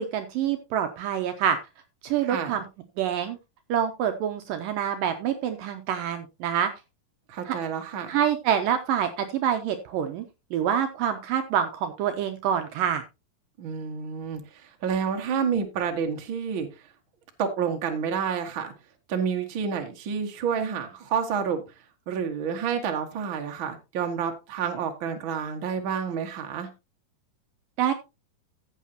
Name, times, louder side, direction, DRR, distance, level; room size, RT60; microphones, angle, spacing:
voice 1, 0.0-1.6 2.0-2.6 3.0-3.4 3.7-6.7 7.5-7.6 8.1-10.2 10.5-13.0 27.8-27.9, right 9 dB, 75° right, 2.3 m, -26 dB
voice 2, 2.3-2.6 7.3-8.2 13.6-16.7 17.4-18.7 19.1-21.6 22.1-26.7, right 7 dB, 45° right, 1.8 m, -29 dB
14.5 x 8.3 x 2.8 m
omnidirectional pair, 4.5 m